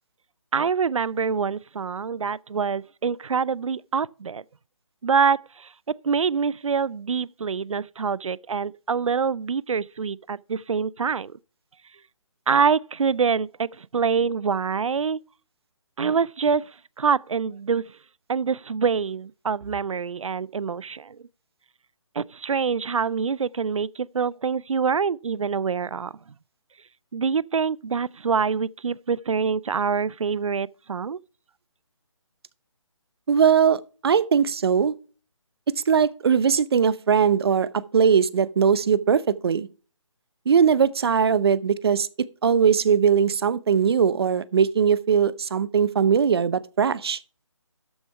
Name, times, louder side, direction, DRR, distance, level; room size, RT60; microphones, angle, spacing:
voice 1, 0.5-4.4 5.0-5.7 6.0-11.3 12.5-15.2 16.0-16.7 17.0-17.8 18.3-21.2 22.2-26.1 27.1-31.2, right 6 dB, 80° right, 0.4 m, -25 dB
voice 2, 33.3-34.9 35.9-39.7 40.5-47.2, right 7 dB, 50° right, 0.8 m, -20 dB
13.0 x 6.2 x 4.7 m
figure-of-eight pair, 150°, 16 cm